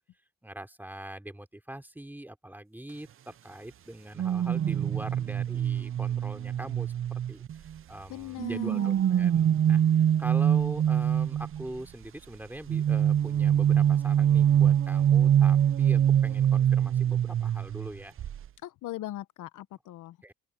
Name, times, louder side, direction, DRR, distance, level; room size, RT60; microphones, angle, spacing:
voice 1, 0.4-18.2 20.2-20.3, right 1 dB, 5° right, 3.1 m, -42 dB
sound 1, 4.2-7.8 8.4-11.6 12.7-17.9 18.2-18.5, right 9 dB, 45° right, 0.6 m, -24 dB
voice 2, 8.1-8.9 18.6-20.2, left 15 dB, 85° left, 1.1 m, -39 dB
open air
cardioid pair, 90°, 30 cm